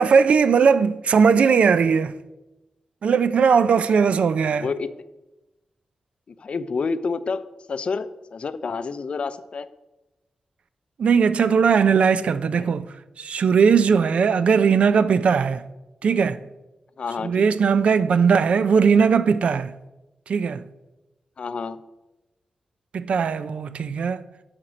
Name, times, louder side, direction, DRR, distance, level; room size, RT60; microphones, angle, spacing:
voice 1, 0.0-2.1 3.0-4.7 11.0-12.9 13.2-15.6 16.0-16.4 17.2-19.7 20.3-20.6 22.9-24.2, right 6 dB, 75° right, 0.4 m, -19 dB
voice 2, 4.6-4.9 6.4-9.7 12.6-12.8 17.0-17.5 21.4-21.8, left 4 dB, 60° left, 0.4 m, -29 dB
10.0 x 4.4 x 5.0 m
cardioid pair, 70°, 2 cm